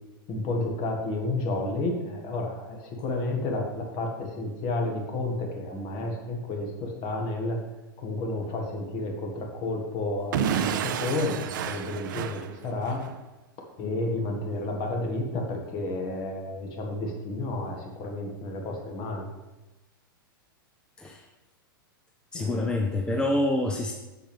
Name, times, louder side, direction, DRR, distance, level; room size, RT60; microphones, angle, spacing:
voice 1, 0.3-7.6 8.0-13.1 13.8-19.2 22.3-22.7, left 2 dB, 40° left, 2 dB, 1.8 m, -31 dB
Explosion / Shatter, 10.3-13.1, right 9 dB, 60° right, 0.5 m, -30 dB
voice 2, 22.3-23.9, left 1 dB, 5° left, 1 dB, 0.7 m, -26 dB
7.8 x 6.5 x 3.5 m, 1.1 s
hypercardioid pair, 105°, 12 cm